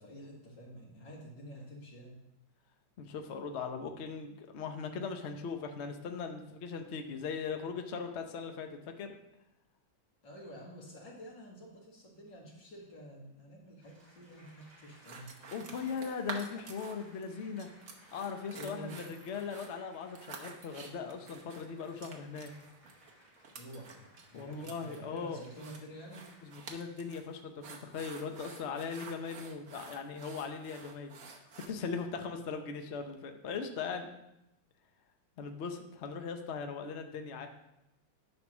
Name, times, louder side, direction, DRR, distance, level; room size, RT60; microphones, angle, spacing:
voice 1, 0.0-2.2 10.2-15.3 18.6-19.0 23.5-26.3, right 1 dB, 75° left, -3 dB, 2.6 m, -49 dB
voice 2, 3.0-9.1 15.5-17.7 18.1-22.5 24.3-25.4 26.4-34.1 35.4-37.5, left 5 dB, 55° left, 5 dB, 0.8 m, -39 dB
Applause, 13.8-26.7, right 1 dB, 25° right, 2.1 m, -62 dB
sound 1, 15.0-17.2 17.6-31.7, right 4 dB, 55° right, 1.3 m, -49 dB
10.5 x 3.6 x 6.1 m, 0.86 s
omnidirectional pair, 2.0 m